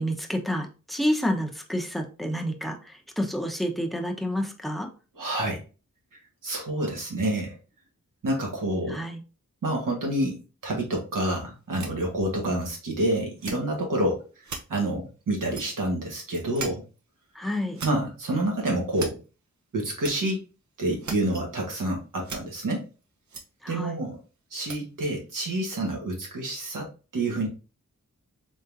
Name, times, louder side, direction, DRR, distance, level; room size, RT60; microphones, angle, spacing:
voice 1, 0.0-4.9 8.9-9.2 17.3-17.8 23.6-24.0, equal, ahead, 2 dB, 0.9 m, -29 dB
voice 2, 5.1-5.6 6.4-7.6 8.2-9.0 9.6-14.2 14.7-16.8 17.8-19.2 19.7-20.4 20.8-22.8 23.7-24.2 24.5-27.5, right 1 dB, 85° right, 0 dB, 1.6 m, -28 dB
sound 1, 11.7-12.5 12.9-13.0 13.4-14.1 14.4-14.6 15.5-15.8 16.3-16.7 17.0-17.1 17.5-17.9 18.4-18.5 18.9-19.2 20.0-20.1 20.7-21.4 21.7-21.8 22.0-22.4 23.3-23.4 24.6-24.8 25.3-25.4, right 4 dB, 65° right, 0.9 m, -37 dB
4.0 x 3.5 x 2.6 m, 0.33 s
cardioid pair, 45°, 31 cm